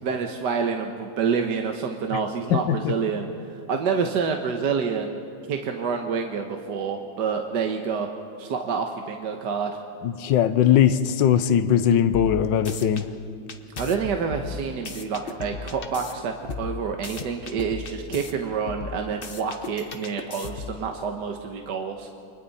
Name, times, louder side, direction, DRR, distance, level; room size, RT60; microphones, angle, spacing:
voice 1, 0.0-3.3 3.5-5.2 5.5-8.1 8.4-9.7 13.8-22.1, right 6 dB, 65° right, 1.6 m, -28 dB
voice 2, 2.5-2.9 10.0-13.1, left 9 dB, 75° left, 1.4 m, -20 dB
sound 1, 12.1-13.0 13.5-16.1 16.5-18.3 18.7-20.8, left 5 dB, 40° left, 1.0 m, -36 dB
29.5 x 25.0 x 4.2 m
omnidirectional pair, 2.0 m